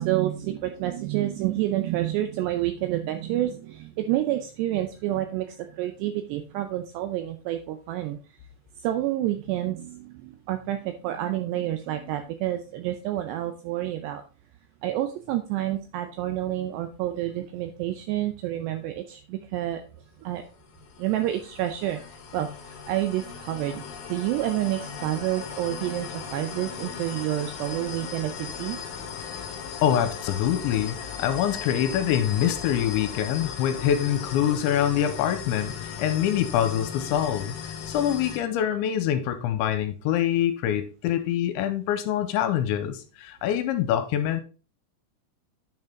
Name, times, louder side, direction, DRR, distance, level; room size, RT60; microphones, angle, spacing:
voice 1, 0.0-8.2 8.8-14.2 14.8-19.8 20.2-20.5 21.0-23.8 24.1-28.8, right 13 dB, 80° right, 7 dB, 2.5 m, -29 dB
sound 1, 20.4-38.4, left 7 dB, 70° left, 2.5 m, -37 dB
voice 2, 29.8-44.4, left 10 dB, 85° left, 10 dB, 3.0 m, -25 dB
9.3 x 5.5 x 3.7 m, 0.34 s
omnidirectional pair, 5.4 m